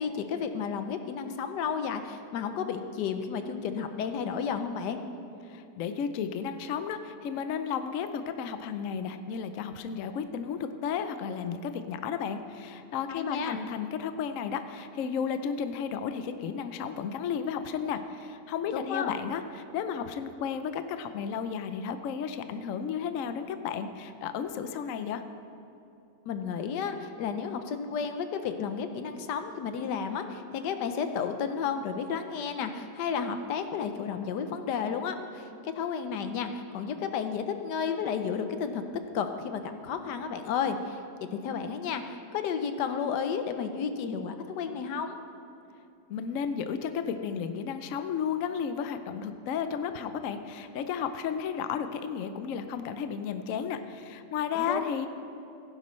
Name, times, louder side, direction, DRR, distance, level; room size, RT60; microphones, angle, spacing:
voice 1, 0.0-5.0 13.2-13.6 18.7-19.1 26.3-38.8 39.1-41.0 41.3-45.2 54.5-54.8, left 6 dB, 80° left, 8 dB, 1.3 m, -32 dB
voice 2, 5.5-25.2 46.1-55.1, left 7 dB, 65° left, 9 dB, 0.8 m, -33 dB
16.0 x 10.5 x 3.2 m, 2.7 s
omnidirectional pair, 1.8 m